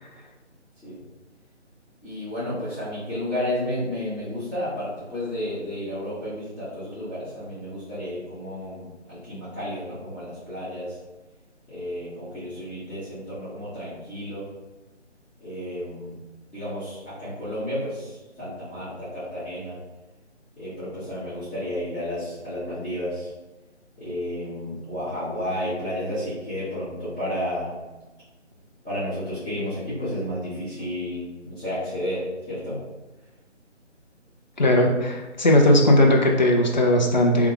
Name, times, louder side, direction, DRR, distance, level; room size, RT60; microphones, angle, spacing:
voice 1, 2.0-11.0 11.7-14.5 15.4-16.2 16.5-19.8 20.5-23.3 24.0-27.8 28.8-32.8, left 1 dB, ahead, -33 dB, 0.8 m, -32 dB
voice 2, 34.6-37.5, left 1 dB, 40° left, 1 dB, 0.7 m, -18 dB
3.5 x 3.4 x 3.7 m, 1.1 s
figure-of-eight pair, 160°, 36 cm